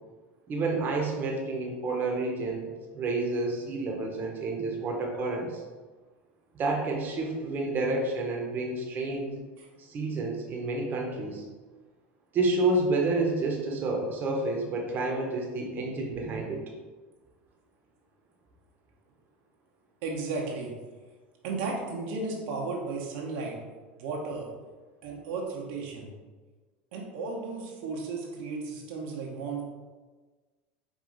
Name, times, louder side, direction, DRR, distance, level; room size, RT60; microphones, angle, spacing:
voice 1, 0.5-2.7 2.9-5.6 6.5-9.4 9.8-11.5 12.3-16.6, right 2 dB, 35° right, -1 dB, 1.0 m, -29 dB
voice 2, 20.0-20.7 21.4-23.6 24.0-24.5 25.0-26.1 26.9-29.6, right 3 dB, 75° right, -1 dB, 0.9 m, -34 dB
4.9 x 2.7 x 3.9 m, 1.3 s
supercardioid pair, 110°, 5 cm